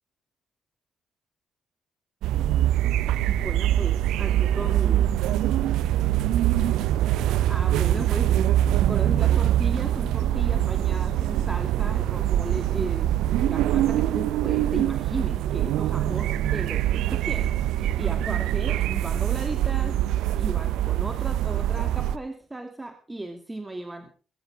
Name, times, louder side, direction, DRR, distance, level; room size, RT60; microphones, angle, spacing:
sound 1, 2.2-22.2, right 12 dB, 65° right, 0.7 m, -23 dB
voice 1, 3.3-5.1 7.3-20.0 20.4-24.2, right 2 dB, 15° right, 6 dB, 2.6 m, -36 dB
19.0 x 16.0 x 3.6 m, 0.36 s
figure-of-eight pair, 45°, 0 cm